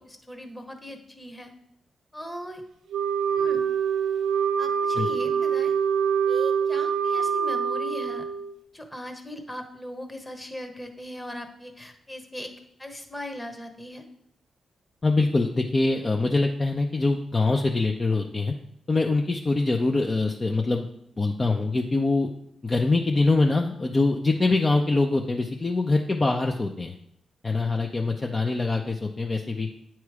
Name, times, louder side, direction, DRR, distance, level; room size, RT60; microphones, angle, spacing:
voice 1, 0.0-1.5 2.1-2.6 3.4-3.6 4.6-5.7 6.3-8.3 8.7-12.5 12.8-14.0, left 1 dB, 15° left, 5 dB, 1.1 m, -39 dB
Wind instrument woodwind instrument, 2.9-8.6, right 7 dB, 85° right, 0.5 m, -25 dB
voice 2, 15.0-18.5 18.9-20.9 21.2-22.3 22.6-27.0 27.4-29.7, left 3 dB, 35° left, 2 dB, 0.6 m, -24 dB
8.4 x 3.1 x 4.8 m, 0.72 s
supercardioid pair, 55°, 0 cm